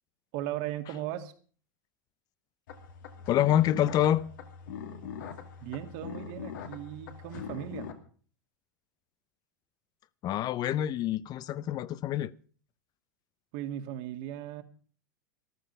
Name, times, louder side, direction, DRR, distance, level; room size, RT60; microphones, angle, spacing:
voice 1, 0.3-1.3 5.6-7.9 13.5-14.6, right 12 dB, 60° right, 1.9 m, -37 dB
sound 1, 2.7-7.9, left 7 dB, 75° left, 2.5 m, -42 dB
voice 2, 3.3-4.3 10.2-12.3, left 11 dB, 40° left, 0.6 m, -26 dB
14.0 x 12.5 x 5.5 m
hypercardioid pair, 105°, 10 cm